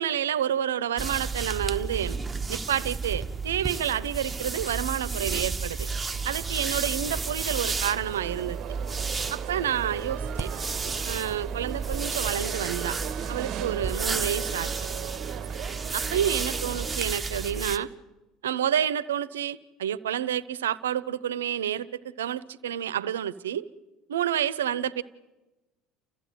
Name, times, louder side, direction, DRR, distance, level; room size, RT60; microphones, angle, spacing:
voice 1, 0.0-2.2 2.5-5.9 6.2-8.6 9.3-10.5 11.0-13.0 13.3-14.7 15.9-17.9 18.4-21.9 22.2-23.7 24.1-25.0, right 10 dB, 85° right, 18 dB, 0.7 m, -29 dB
sound 1, 1.0-17.8, right 4 dB, 15° right, 1.3 m, -32 dB
sound 2, 5.9-17.0, right 11 dB, 55° right, 0.9 m, -39 dB
29.5 x 15.5 x 9.4 m, 1.1 s
hypercardioid pair, 70°, 0 cm